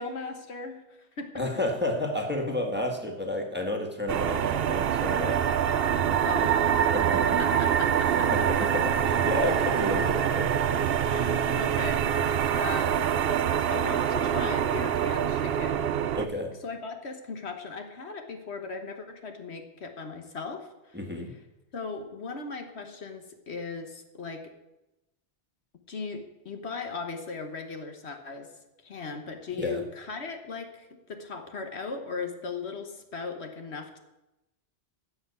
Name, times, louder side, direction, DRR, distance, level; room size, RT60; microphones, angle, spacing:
voice 1, 0.0-1.4 6.2-6.6 7.4-8.5 11.0-13.1 13.7-15.9 16.6-21.0 21.7-24.5 25.9-28.5 28.8-34.0, left 4 dB, 65° left, 5 dB, 1.5 m, -38 dB
voice 2, 1.3-5.5 6.1-6.2 6.9-7.4 8.1-10.5 16.1-16.5 20.9-21.3 29.6-29.8, left 1 dB, 10° right, 1 dB, 1.6 m, -31 dB
sound 1, 4.1-16.3, right 9 dB, 60° right, 0.8 m, -25 dB
15.0 x 5.8 x 8.2 m, 0.96 s
omnidirectional pair, 1.2 m